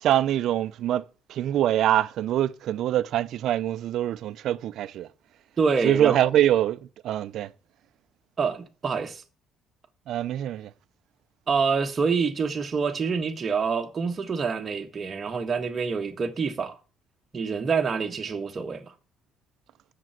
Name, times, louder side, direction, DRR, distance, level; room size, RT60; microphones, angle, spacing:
voice 1, 0.0-5.1 5.8-7.5 10.1-10.7, right 12 dB, 65° right, 0.6 m, -24 dB
voice 2, 5.6-6.2 8.4-9.2 11.5-16.8 17.3-18.9, right 5 dB, 30° right, 1.5 m, -26 dB
7.5 x 6.9 x 7.6 m
cardioid pair, 130°, 0 cm